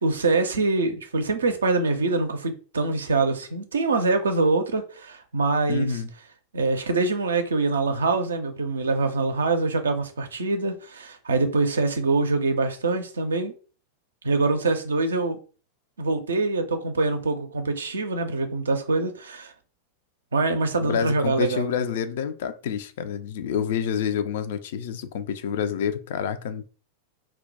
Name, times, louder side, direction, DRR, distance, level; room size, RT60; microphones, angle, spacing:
voice 1, 0.0-6.0 6.5-13.5 14.2-15.4 16.0-19.5 20.3-21.7, right 3 dB, 70° right, 0.4 m, -24 dB
voice 2, 5.7-6.1 20.8-26.6, left 7 dB, 55° left, 0.3 m, -28 dB
2.2 x 2.1 x 3.8 m
figure-of-eight pair, 90°, 0 cm